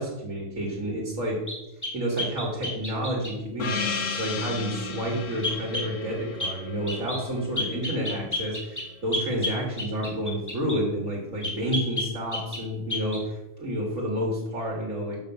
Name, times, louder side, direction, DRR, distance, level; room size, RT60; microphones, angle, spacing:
voice 1, 0.0-1.4 1.9-15.2, equal, 85° right, -2 dB, 2.2 m, -30 dB
sound 1, 1.5-3.4 5.4-5.9 6.4-6.6 6.9-7.2 7.6-10.8 11.4-12.6 12.9-13.2, left 2 dB, 15° left, 1.6 m, -32 dB
Gong, 3.6-8.4, left 4 dB, 75° left, 1.3 m, -34 dB
5.9 x 5.7 x 6.7 m, 0.95 s
omnidirectional pair, 1.3 m